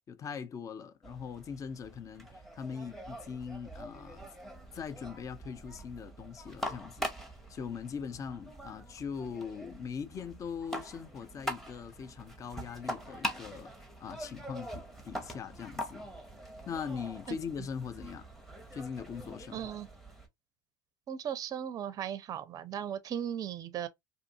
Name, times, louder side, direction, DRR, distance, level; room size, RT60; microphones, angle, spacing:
voice 1, 0.1-4.3 4.7-7.1 7.5-16.1 16.7-18.3 18.7-19.7, left 6 dB, 30° left, 0.5 m, -41 dB
sound 1, 1.0-20.3, equal, ahead, 0.8 m, -43 dB
voice 2, 19.5-19.9 21.1-23.9, right 9 dB, 35° right, 0.5 m, -37 dB
2.6 x 2.6 x 2.5 m
hypercardioid pair, 100°, 11 cm